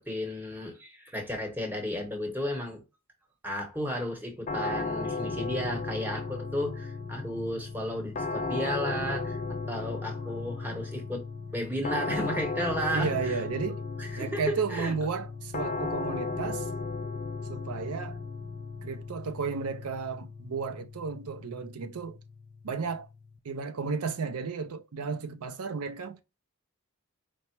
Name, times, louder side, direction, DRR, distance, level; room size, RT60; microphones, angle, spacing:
voice 1, 0.0-2.8 3.4-11.2 11.5-13.6 14.0-14.9, equal, 10° right, 1.0 m, -33 dB
sound 1, 4.5-23.4, left 3 dB, 35° left, 0.4 m, -36 dB
voice 2, 12.9-13.8 14.2-16.7 17.5-18.2 18.8-22.2 22.6-23.1 23.4-26.2, right 5 dB, 90° right, 0.5 m, -33 dB
4.5 x 2.0 x 4.3 m
head